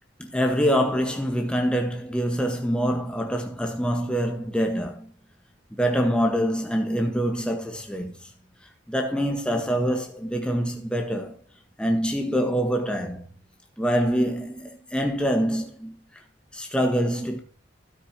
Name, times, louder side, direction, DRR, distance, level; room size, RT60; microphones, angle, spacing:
voice 1, 0.2-5.1 5.7-8.2 8.9-11.4 11.8-13.2 13.8-16.0 16.5-17.4, equal, 5° left, 1.5 m, -25 dB
13.0 x 8.9 x 3.0 m
head